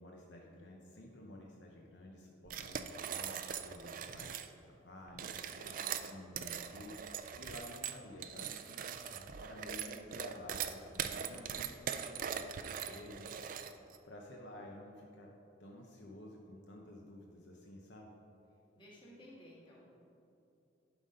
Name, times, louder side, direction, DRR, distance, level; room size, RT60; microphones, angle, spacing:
voice 1, 0.0-4.3 4.6-5.3 5.6-8.8 9.1-13.4 14.0-15.3 15.6-18.1, left 1 dB, 65° left, -1 dB, 0.7 m, -52 dB
sound 1, 2.5-4.5 5.1-14.0, right 8 dB, 45° right, 0.3 m, -41 dB
voice 2, 5.5-6.0 18.8-19.9, left 1 dB, 25° left, -6 dB, 1.8 m, -56 dB
11.0 x 4.0 x 5.1 m, 2.8 s
head